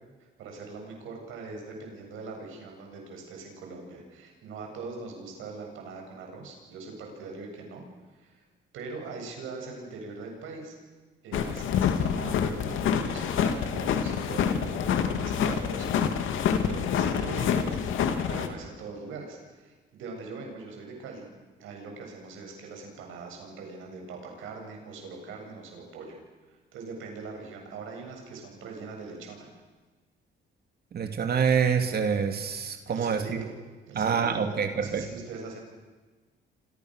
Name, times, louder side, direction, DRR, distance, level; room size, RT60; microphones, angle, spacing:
voice 1, 0.2-7.8 8.1-8.5 8.7-10.7 11.2-17.8 18.3-21.3 21.6-26.2 26.5-29.5 32.9-33.5 33.9-35.6, right 4 dB, 90° right, 2 dB, 7.9 m, -42 dB
sound 1, 11.3-18.5, left 7 dB, 85° left, 2.6 m, -27 dB
voice 2, 30.9-33.4 34.0-35.0, right 6 dB, 55° right, 6 dB, 2.5 m, -26 dB
29.5 x 26.0 x 6.6 m, 1.3 s
cardioid pair, 90°, 20 cm